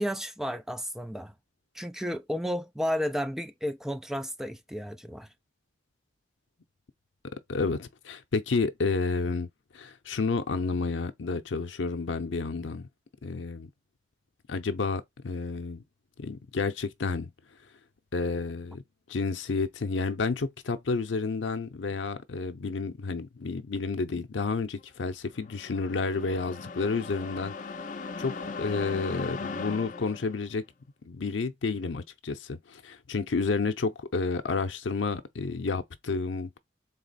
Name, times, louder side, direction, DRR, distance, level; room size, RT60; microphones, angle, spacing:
voice 1, 0.0-1.3 1.7-5.3, equal, ahead, 0.3 m, -32 dB
voice 2, 7.5-9.5 9.7-12.9 13.2-13.7 14.5-15.8 16.2-17.3 18.1-18.8 19.1-27.5 28.2-30.6 31.0-36.6, left 4 dB, 90° left, 0.6 m, -30 dB
sound 1, 25.4-30.4, left 4 dB, 45° left, 0.6 m, -38 dB
4.0 x 3.0 x 4.0 m
head